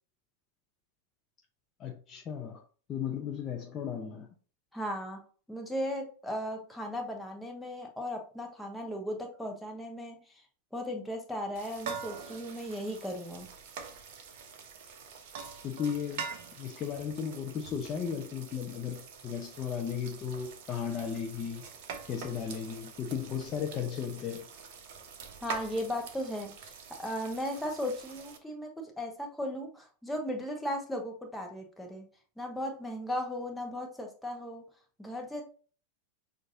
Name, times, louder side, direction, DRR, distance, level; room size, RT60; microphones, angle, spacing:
voice 1, 1.8-2.6 2.9-4.3 15.6-16.3 16.6-21.6 22.1-24.5, left 7 dB, 30° left, 0.5 m, -35 dB
voice 2, 4.7-5.2 5.5-10.2 10.7-13.5 25.4-26.7 27.0-32.0 32.4-34.6 35.0-35.4, equal, 5° left, 1.0 m, -36 dB
sound 1, 11.6-28.4, right 6 dB, 50° right, 0.7 m, -45 dB
6.3 x 2.6 x 2.6 m
figure-of-eight pair, 90°, 0 cm